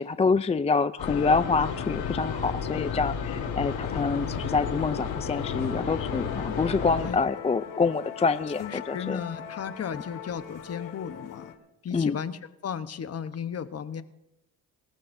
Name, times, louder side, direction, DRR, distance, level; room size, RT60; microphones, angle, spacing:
voice 1, 0.0-9.2 11.9-12.2, left 4 dB, 20° left, 13 dB, 0.4 m, -26 dB
sound 1, 1.0-7.1, left 6 dB, 90° left, 4.5 m, -32 dB
Musical instrument, 3.7-11.6, left 8 dB, 65° left, 2.2 m, -41 dB
voice 2, 8.6-11.5 11.8-14.0, left 7 dB, 45° left, 11 dB, 1.1 m, -35 dB
25.0 x 14.0 x 2.7 m, 0.94 s
cardioid pair, 90°, 35 cm